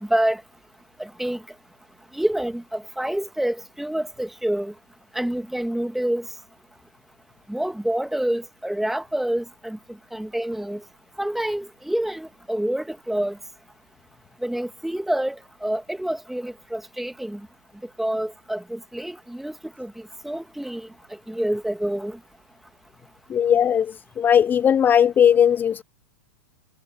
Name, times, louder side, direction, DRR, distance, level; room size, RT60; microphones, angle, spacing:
voice 1, 0.0-0.4 1.0-1.4 2.1-4.7 5.1-6.3 7.5-10.8 11.2-13.4 14.4-17.5 18.0-20.9 21.3-22.2, right 1 dB, ahead, 2.1 m, -27 dB
voice 2, 23.3-25.8, left 8 dB, 20° left, 0.7 m, -18 dB
hypercardioid pair, 105°, 9 cm